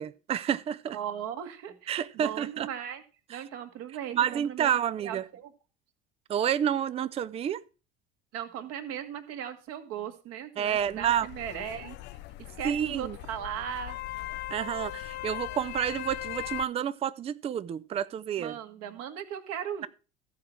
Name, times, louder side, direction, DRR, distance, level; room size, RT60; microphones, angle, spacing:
voice 1, 0.0-1.0 1.9-2.7 3.3-3.4 4.1-5.2 6.3-7.6 10.6-11.3 12.6-13.2 14.5-18.6, right 9 dB, 20° right, 0.5 m, -29 dB
voice 2, 0.9-3.0 3.3-4.7 5.0-5.5 8.3-12.0 12.4-14.0 18.4-19.9, right 9 dB, 50° right, 1.6 m, -38 dB
sound 1, 10.7-16.7, left 16 dB, 35° left, 0.4 m, -39 dB
14.0 x 4.9 x 6.1 m
figure-of-eight pair, 65°, 31 cm